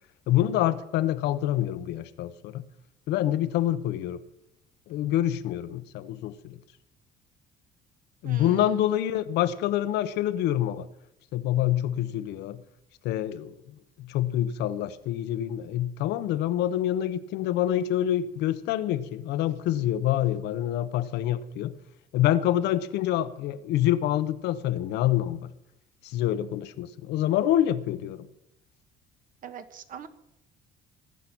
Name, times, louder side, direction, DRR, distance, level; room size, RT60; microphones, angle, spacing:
voice 1, 0.3-2.6 3.1-4.2 4.9-6.6 8.2-10.9 11.3-12.6 13.0-13.6 14.0-21.7 22.1-25.5 26.0-28.3, left 12 dB, 85° left, 13 dB, 1.0 m, -26 dB
voice 2, 8.2-8.6 29.4-30.1, right 8 dB, 55° right, 10 dB, 1.5 m, -41 dB
19.0 x 8.5 x 6.2 m, 0.84 s
cardioid pair, 110°, 17 cm